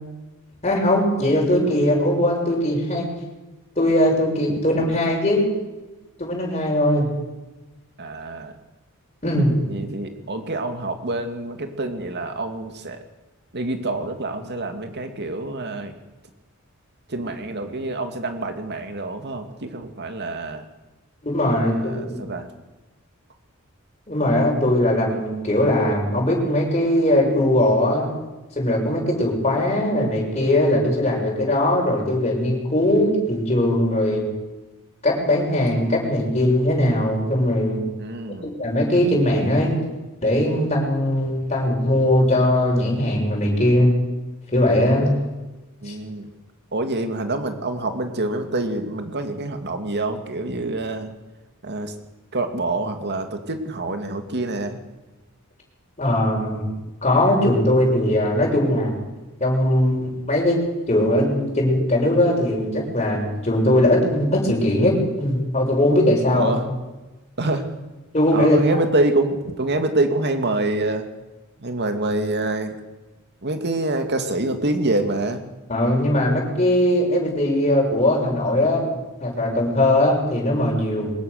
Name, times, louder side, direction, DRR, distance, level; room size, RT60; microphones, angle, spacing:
voice 1, 0.6-3.1 3.8-5.4 6.2-7.1 9.2-9.5 21.2-22.2 24.1-28.1 28.5-34.3 35.0-37.8 38.6-39.8 40.2-43.9 44.5-45.1 45.8-45.9 56.0-56.7 57.0-58.9 59.4-60.6 60.9-66.6 68.1-68.6 75.7-81.1, left 1 dB, 30° left, -1 dB, 6.7 m, -20 dB
voice 2, 8.0-8.5 9.7-13.0 13.5-15.9 17.1-20.7 21.5-22.5 38.0-38.6 45.8-46.3 46.7-51.1 51.6-51.9 52.3-54.8 66.3-66.7 67.4-67.7 68.3-71.0 71.6-72.7 73.4-75.4, right 2 dB, 50° right, 6 dB, 2.5 m, -26 dB
22.5 x 20.0 x 6.8 m, 1.1 s
head